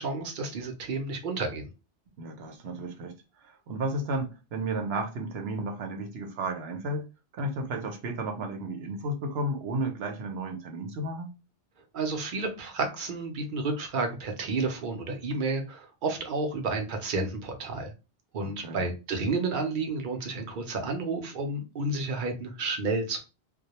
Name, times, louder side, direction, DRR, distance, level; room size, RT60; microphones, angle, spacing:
voice 1, 0.0-1.7 11.9-17.9 18.3-23.2, right 3 dB, 60° right, 0.7 m, -31 dB
voice 2, 2.2-3.2 3.4-7.1 7.3-11.3 18.4-18.8, right 1 dB, 85° right, 0.9 m, -33 dB
2.2 x 2.1 x 2.8 m
omnidirectional pair, 1.0 m